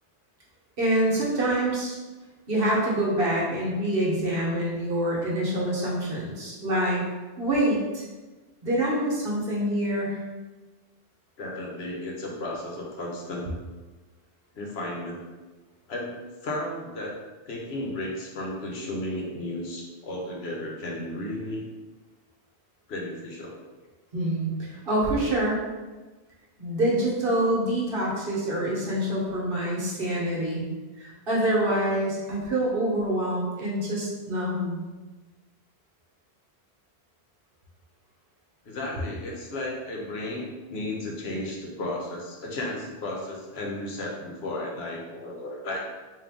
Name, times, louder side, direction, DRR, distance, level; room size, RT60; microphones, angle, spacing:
voice 1, 0.8-2.0 2.5-7.0 7.4-8.0 8.6-10.2 24.1-25.6 26.6-30.7 31.0-34.8, right 1 dB, 60° right, -4 dB, 1.1 m, -26 dB
voice 2, 11.4-13.5 14.5-15.2 15.9-16.1 16.4-17.2 17.5-21.6 22.9-23.5 38.6-45.8, left 1 dB, 70° left, -1 dB, 1.0 m, -34 dB
3.7 x 2.7 x 3.5 m, 1.2 s
omnidirectional pair, 1.1 m